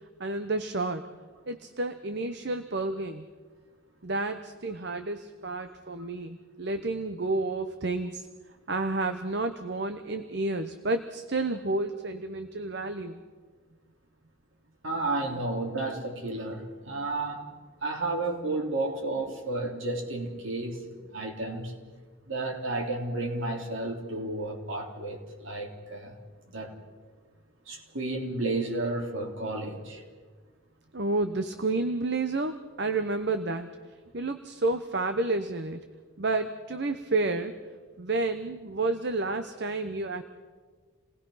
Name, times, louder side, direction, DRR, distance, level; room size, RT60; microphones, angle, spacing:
voice 1, 0.2-1.0 1.5-3.3 4.0-8.3 8.7-13.2 30.9-33.7 34.1-35.8 36.2-37.6 38.0-40.2, right 2 dB, 55° right, 8 dB, 0.9 m, -30 dB
voice 2, 14.8-17.5 17.8-21.7 22.2-26.2 26.4-26.8 27.7-30.0, right 2 dB, 70° right, 1 dB, 3.4 m, -32 dB
28.5 x 19.5 x 5.7 m, 1.5 s
head